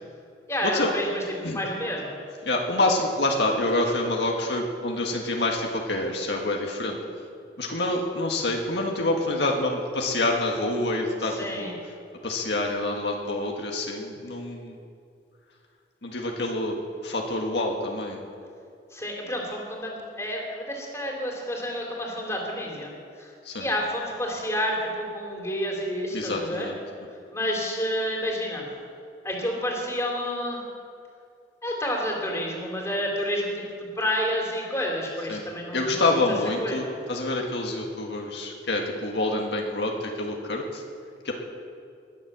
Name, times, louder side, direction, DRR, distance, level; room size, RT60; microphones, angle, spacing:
voice 1, 0.5-1.2 1.5-2.1 11.3-11.7 18.9-22.9 23.2-23.3 23.6-26.7 27.3-28.6 29.2-30.6 31.6-33.6 34.0-36.0 36.6-36.9, equal, 15° left, -1 dB, 3.0 m, -29 dB
voice 2, 2.4-7.0 7.6-11.7 12.2-14.8 16.0-18.2 23.4-23.7 26.1-26.8 35.3-35.4 35.7-40.8 41.2-41.3, left 2 dB, 75° left, 1 dB, 1.6 m, -27 dB
20.0 x 7.5 x 7.4 m, 2.5 s
head